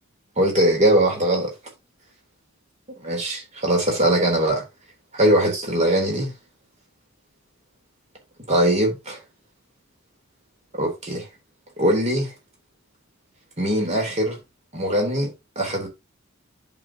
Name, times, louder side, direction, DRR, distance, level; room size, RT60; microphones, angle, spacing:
voice 1, 0.4-1.5 3.0-4.6 5.1-6.3 8.5-9.2 10.7-11.3 11.8-12.3 13.6-14.4 14.7-15.9, right 1 dB, 35° right, 3.5 m, -21 dB
10.5 x 5.5 x 2.9 m
head